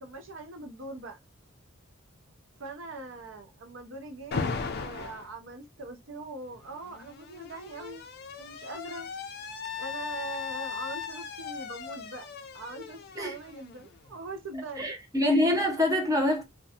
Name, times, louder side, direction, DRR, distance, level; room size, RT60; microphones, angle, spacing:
voice 1, 0.0-1.2 2.6-8.0 8.4-9.1 9.8-12.3 12.5-14.9, right 3 dB, 65° right, 0.5 m, -42 dB
Alarm, 4.3-5.3 6.5-14.2, left 5 dB, 50° left, 0.4 m, -38 dB
voice 2, 14.8-16.4, left 1 dB, 15° right, 0.6 m, -25 dB
2.5 x 2.2 x 2.7 m
head